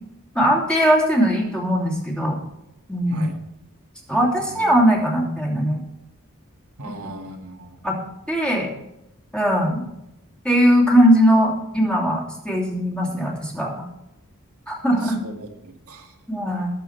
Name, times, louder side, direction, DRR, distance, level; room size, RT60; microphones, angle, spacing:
voice 1, 0.3-2.4 2.9-3.3 4.1-5.8 7.8-8.0 8.3-8.7 9.3-9.9 10.4-13.8 14.7-15.2 16.3-16.7, equal, 5° left, -2 dB, 2.7 m, -19 dB
voice 2, 4.4-4.9 6.8-7.8 15.0-16.1, right 2 dB, 80° right, 3 dB, 1.7 m, -39 dB
19.5 x 7.5 x 4.4 m, 0.86 s
head